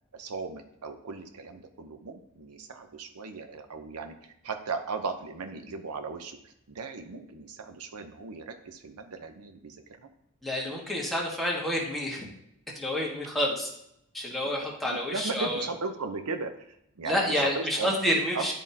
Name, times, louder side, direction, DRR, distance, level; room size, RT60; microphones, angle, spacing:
voice 1, 0.1-10.1 14.8-18.0 18.3-18.5, right 4 dB, 80° right, 7 dB, 0.7 m, -37 dB
voice 2, 10.4-12.3 12.7-13.7 14.1-15.6 17.0-18.5, left 1 dB, ahead, -3 dB, 1.4 m, -29 dB
10.5 x 3.6 x 2.8 m, 0.77 s
head